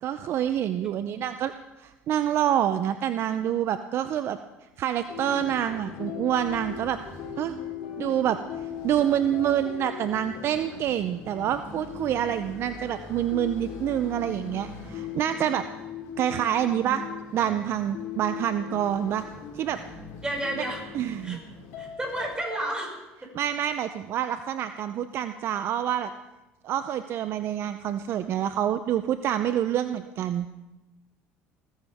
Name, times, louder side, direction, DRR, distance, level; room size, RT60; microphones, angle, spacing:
voice 1, 0.0-1.5 1.8-4.4 4.8-7.0 7.4-7.6 8.0-8.4 8.8-15.6 16.2-17.0 17.3-19.2 19.5-19.8 20.6-20.7 20.9-21.4 23.3-26.1 26.6-30.5, right 10 dB, 55° right, 11 dB, 0.6 m, -27 dB
sound 1, 5.1-22.3, left 7 dB, 70° left, 3.9 m, -39 dB
voice 2, 20.2-20.8 21.2-21.4 21.8-23.0, right 1 dB, 15° right, -1 dB, 6.1 m, -31 dB
20.5 x 14.5 x 3.6 m, 1.0 s
supercardioid pair, 100°, 5 cm